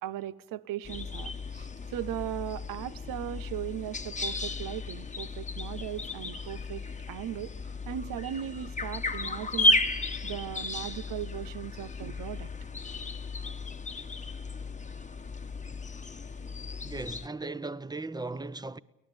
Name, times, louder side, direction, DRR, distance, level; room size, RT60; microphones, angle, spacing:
voice 1, 0.0-6.8 7.1-7.5 7.9-12.5, right 12 dB, 85° right, 0.8 m, -38 dB
sound 1, 0.8-17.3, left 2 dB, 20° left, 1.1 m, -34 dB
voice 2, 16.8-18.8, right 3 dB, 10° right, 0.9 m, -37 dB
24.0 x 19.0 x 8.8 m
cardioid pair, 65°, 33 cm